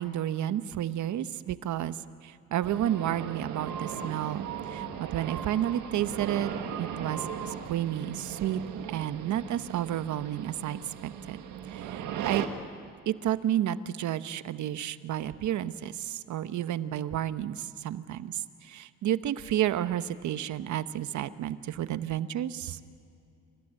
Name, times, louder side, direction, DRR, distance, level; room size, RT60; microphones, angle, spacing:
voice 1, 0.0-2.0 2.2-4.4 4.7-6.5 6.8-8.6 8.9-11.4 11.7-12.4 13.1-22.8, right 11 dB, 70° right, 13 dB, 1.0 m, -31 dB
sound 1, 2.6-12.5, right 8 dB, 90° right, 1.7 m, -37 dB
27.5 x 15.5 x 9.8 m, 2.6 s
cardioid pair, 90°, 30 cm